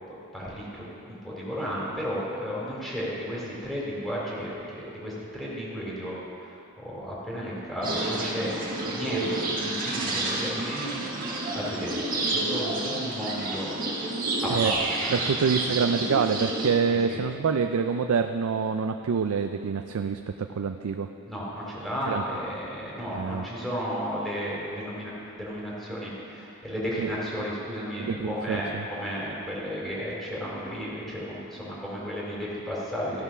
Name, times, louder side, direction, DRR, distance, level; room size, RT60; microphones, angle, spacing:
voice 1, 0.1-11.0 11.3-13.7 14.4-14.8 16.9-17.2 21.3-33.2, equal, ahead, -7 dB, 2.5 m, -33 dB
sound 1, 7.8-16.7, right 2 dB, 40° right, 1.3 m, -30 dB
voice 2, 15.1-21.1 22.1-22.2 23.1-23.5 27.0-27.1 28.0-28.8, right 6 dB, 75° right, 7 dB, 0.4 m, -26 dB
14.5 x 5.6 x 6.0 m, 2.9 s
head